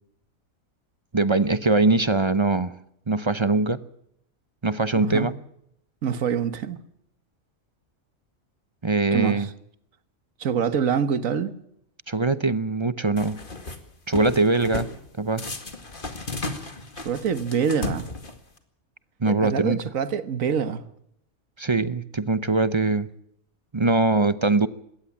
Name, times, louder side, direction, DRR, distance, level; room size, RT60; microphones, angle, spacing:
voice 1, 1.1-2.7 3.1-3.8 4.6-5.3 8.8-9.5 12.1-13.4 14.1-14.9 15.2-15.5 19.2-19.8 21.6-23.1 23.7-24.7, right 3 dB, 30° right, 0.6 m, -22 dB
voice 2, 4.9-5.3 6.0-6.8 9.1-9.5 10.4-11.5 17.0-18.1 19.3-20.8, right 7 dB, 80° right, 1.7 m, -25 dB
sound 1, 13.2-13.8 14.1-15.0 15.4-18.6, left 3 dB, 40° left, 2.2 m, -34 dB
21.5 x 17.5 x 7.3 m
omnidirectional pair, 1.4 m